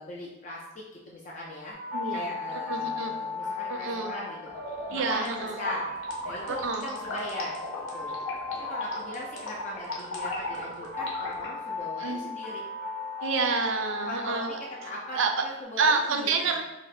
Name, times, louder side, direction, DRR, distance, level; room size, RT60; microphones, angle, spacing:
voice 1, 0.0-1.8 2.1-4.4 4.9-5.3 5.6-5.8 6.2-7.6 7.9-8.2 8.5-12.6 14.0-14.4 14.8-16.4, left 1 dB, 35° left, -3 dB, 0.3 m, -39 dB
sound 1, 1.7-15.6, left 3 dB, ahead, 0.7 m, -37 dB
voice 2, 1.9-3.1 3.7-4.1 4.9-5.6 6.5-6.9 12.0-12.2 13.2-15.3 15.8-16.6, right 4 dB, 70° right, 4 dB, 0.4 m, -29 dB
sound 2, 4.5-11.5, left 3 dB, 75° left, 0.7 m, -36 dB
2.6 x 2.1 x 4.0 m, 1.0 s
head